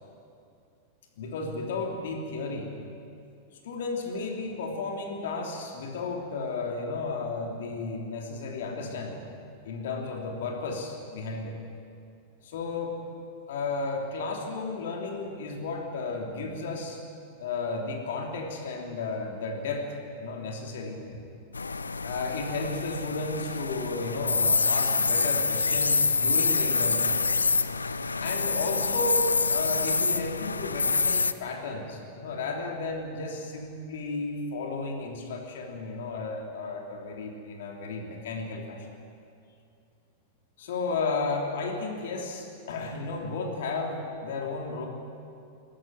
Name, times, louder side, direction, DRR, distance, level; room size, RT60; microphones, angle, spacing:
voice 1, 1.2-2.8 3.6-9.2 9.6-11.5 12.4-13.0 13.5-17.0 17.4-19.9 20.2-21.2 22.0-27.2 28.2-38.9 40.6-44.9, left 3 dB, 60° left, 1 dB, 3.2 m, -33 dB
sound 1, 21.5-31.3, left 4 dB, 75° left, 0.6 m, -26 dB
22.0 x 12.5 x 9.5 m, 2.5 s
figure-of-eight pair, 90°, 0 cm